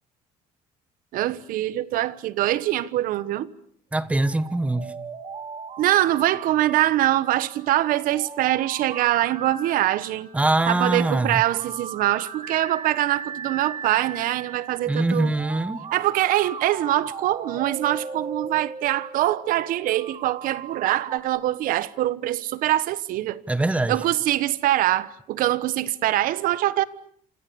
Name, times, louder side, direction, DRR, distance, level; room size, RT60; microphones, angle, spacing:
voice 1, 1.1-3.5 5.8-10.3 10.7-15.3 15.9-23.4 23.9-26.8, right 14 dB, 70° right, 1.2 m, -23 dB
voice 2, 3.9-4.9 10.3-11.4 14.9-15.8 23.5-24.0, right 2 dB, 10° right, 1.1 m, -23 dB
sound 1, 4.0-21.2, right 5 dB, 40° right, 2.8 m, -38 dB
27.5 x 27.5 x 7.0 m
cardioid pair, 160°, 15 cm